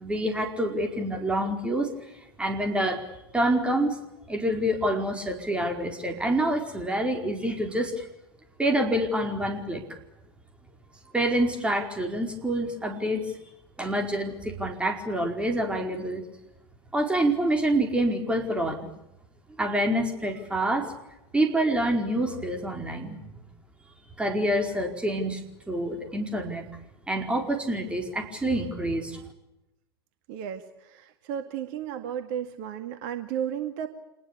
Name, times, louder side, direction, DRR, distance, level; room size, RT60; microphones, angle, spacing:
voice 1, 0.0-1.9 2.4-3.1 3.3-4.0 4.3-8.1 8.6-9.8 11.1-13.3 13.8-16.2 16.9-18.9 19.6-20.9 21.3-23.4 24.2-25.4 25.7-26.6 27.1-29.2, right 1 dB, 10° right, 3 dB, 4.9 m, -27 dB
voice 2, 30.3-33.9, right 9 dB, 50° right, 8 dB, 2.1 m, -33 dB
27.5 x 20.5 x 8.5 m, 0.90 s
figure-of-eight pair, 90°, 13 cm